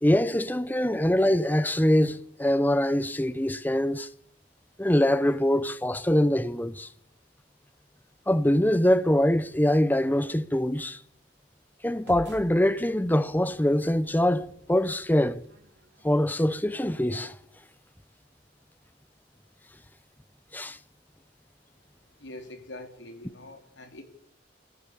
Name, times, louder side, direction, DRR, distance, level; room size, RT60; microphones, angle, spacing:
voice 1, 0.0-4.1 4.8-6.9 8.3-11.0 11.8-15.4 16.0-17.3 20.5-20.8, left 1 dB, 10° left, 0.8 m, -24 dB
sound 1, 11.9-16.6, equal, 65° right, 3.4 m, -50 dB
voice 2, 22.2-24.0, left 1 dB, 85° left, 4.1 m, -44 dB
29.0 x 16.5 x 7.0 m
head